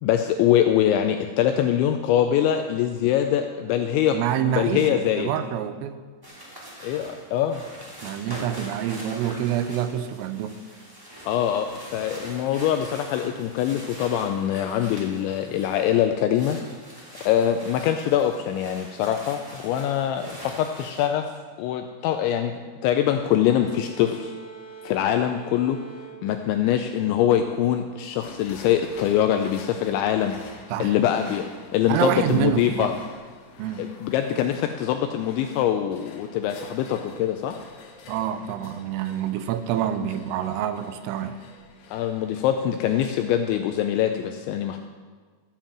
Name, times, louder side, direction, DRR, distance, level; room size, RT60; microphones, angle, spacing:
voice 1, 0.0-4.1 4.5-5.3 6.8-7.6 11.3-16.6 17.3-21.3 21.6-22.5 22.8-24.3 24.8-25.8 26.2-30.4 30.8-31.4 31.7-32.9 33.8-37.6 41.9-44.8, left 10 dB, 85° left, 6 dB, 2.6 m, -23 dB
voice 2, 4.1-6.0 8.0-10.6 30.7-31.0 31.9-32.9 33.6-33.8 38.1-41.4, right 10 dB, 90° right, 10 dB, 3.3 m, -27 dB
sound 1, 6.2-16.0 16.3-21.1, equal, 10° right, 0.9 m, -43 dB
sound 2, 23.0-27.4, right 5 dB, 35° right, 5.6 m, -45 dB
sound 3, 28.2-43.8, left 3 dB, 65° left, 2.7 m, -47 dB
13.5 x 7.2 x 7.5 m, 1.5 s
omnidirectional pair, 5.8 m